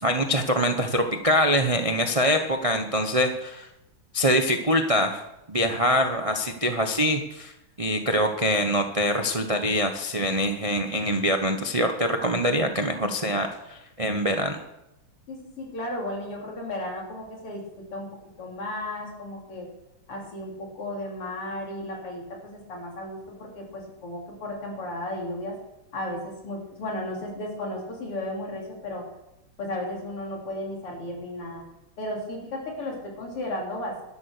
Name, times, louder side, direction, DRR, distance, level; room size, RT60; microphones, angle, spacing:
voice 1, 0.0-3.7 4.1-5.2 5.5-7.5 7.8-14.6, equal, 50° right, 5 dB, 0.4 m, -24 dB
voice 2, 15.3-18.1 18.4-19.7 20.1-25.6 25.9-29.0 29.6-31.6 32.0-34.0, left 1 dB, 85° left, -1 dB, 4.5 m, -34 dB
12.0 x 11.5 x 6.7 m, 0.90 s
omnidirectional pair, 2.4 m